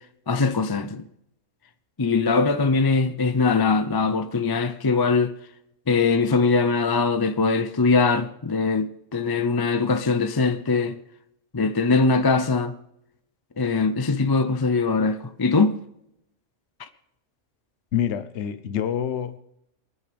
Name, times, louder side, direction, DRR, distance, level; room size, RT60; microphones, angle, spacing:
voice 1, 0.3-1.0 2.0-5.3 5.9-11.0 11.5-12.7 13.6-15.7 16.8-16.9, left 4 dB, 30° left, 0.4 m, -21 dB
voice 2, 17.9-19.4, left 9 dB, 55° left, 1.1 m, -26 dB
28.5 x 9.8 x 3.5 m
omnidirectional pair, 1.5 m